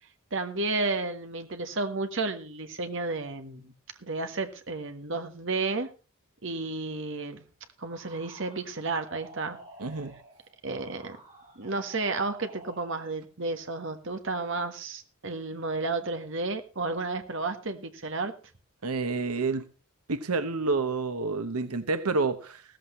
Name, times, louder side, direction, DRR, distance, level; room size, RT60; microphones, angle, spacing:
voice 1, 0.3-3.7 4.0-5.9 6.4-7.4 7.8-9.6 10.6-11.2 11.6-18.3, right 3 dB, 60° right, 7 dB, 1.5 m, -32 dB
sound 1, 7.8-13.2, right 2 dB, 35° right, 6.6 m, -51 dB
voice 2, 9.8-10.1 18.8-19.6 20.1-22.6, right 3 dB, 90° right, 10 dB, 1.0 m, -29 dB
16.0 x 14.5 x 3.2 m, 0.33 s
head